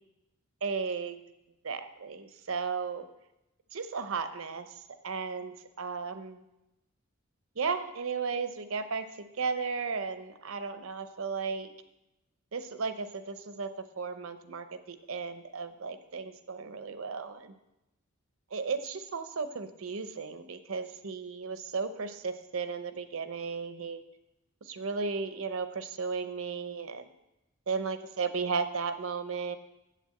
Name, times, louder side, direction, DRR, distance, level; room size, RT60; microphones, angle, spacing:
voice 1, 0.6-1.2 1.6-3.1 3.7-6.4 7.6-11.7 12.5-13.7 14.0-17.5 18.5-24.0 24.6-27.1 27.7-29.6, right 5 dB, 75° right, 10 dB, 0.8 m, -35 dB
8.0 x 6.7 x 7.7 m, 0.93 s
head